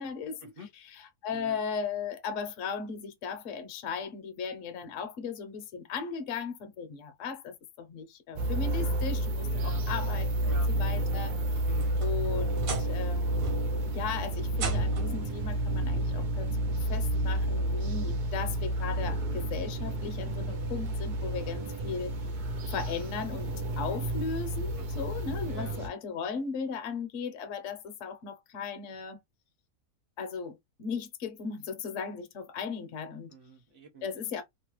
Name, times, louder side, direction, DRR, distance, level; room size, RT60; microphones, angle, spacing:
voice 1, 0.0-11.3 12.0-22.1 22.7-29.2 30.2-33.3 34.0-34.4, left 5 dB, 60° left, 1.0 m, -37 dB
sound 1, 8.4-25.9, right 1 dB, 85° right, 0.4 m, -30 dB
voice 2, 9.4-9.8 10.5-10.7 11.0-11.2 11.6-12.0 24.8-25.0 25.5-25.8 33.3-34.1, right 2 dB, 45° right, 0.9 m, -47 dB
sound 2, 11.5-13.1 13.4-13.9 14.5-15.2 16.4-16.5 17.1-17.2 18.8-18.9, right 4 dB, 65° right, 1.4 m, -37 dB
3.0 x 2.1 x 3.1 m
omnidirectional pair, 1.6 m